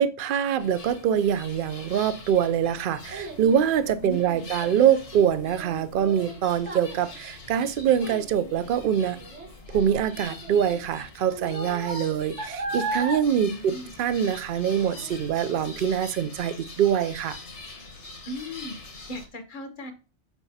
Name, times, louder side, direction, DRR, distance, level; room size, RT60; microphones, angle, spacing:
voice 1, 0.0-9.2 9.7-17.4, right 9 dB, 60° right, 0.6 m, -24 dB
sound 1, 0.6-19.3, left 3 dB, 85° left, 1.6 m, -44 dB
Child speech kid speaking, 2.1-14.6 14.9-15.4 15.9-16.0, right 2 dB, 80° right, 1.7 m, -37 dB
voice 2, 4.0-4.5 13.4-13.9 18.3-19.9, equal, 50° left, 0.9 m, -37 dB
7.0 x 5.9 x 2.7 m
omnidirectional pair, 1.1 m